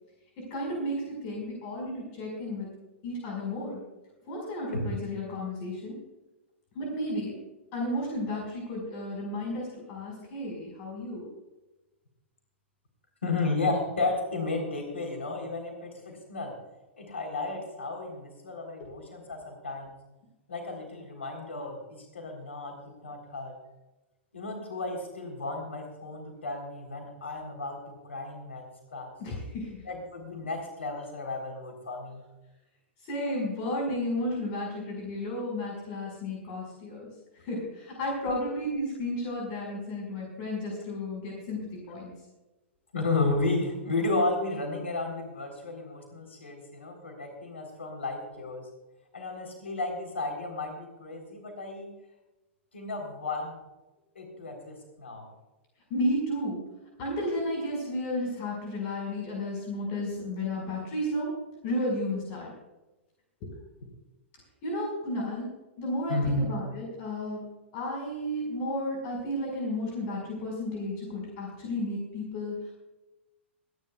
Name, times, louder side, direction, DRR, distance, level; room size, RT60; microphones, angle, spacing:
voice 1, 0.4-2.7 3.0-3.8 4.3-5.9 6.7-7.3 7.7-11.2 29.2-29.8 33.0-37.1 37.3-42.1 55.9-56.6 57.0-61.3 61.6-62.5 64.6-65.5 65.8-67.4 67.7-72.7, left 1 dB, 45° left, -1 dB, 5.1 m, -33 dB
voice 2, 13.2-16.5 17.0-20.0 20.5-23.6 24.3-28.6 28.9-29.1 29.8-32.2 42.9-48.7 49.1-51.9 52.7-53.5 54.2-55.3 66.1-66.5, left 3 dB, 75° left, 3 dB, 3.6 m, -33 dB
26.0 x 10.5 x 2.4 m, 1.1 s
figure-of-eight pair, 105°, 7 cm